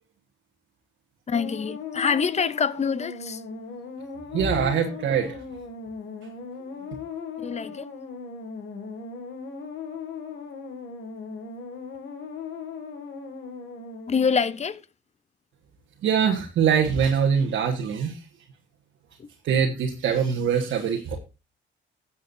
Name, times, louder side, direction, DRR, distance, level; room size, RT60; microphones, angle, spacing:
sound 1, 1.3-14.6, left 5 dB, 75° left, 2.3 m, -38 dB
voice 1, 1.3-3.4 7.4-7.9 14.1-14.8 19.2-19.3, left 6 dB, 35° left, 0.7 m, -25 dB
voice 2, 4.3-5.4 6.8-6.9 16.0-18.3 19.4-21.2, right 7 dB, 75° right, 1.6 m, -23 dB
17.0 x 7.4 x 2.6 m
cardioid pair, 90°, 20 cm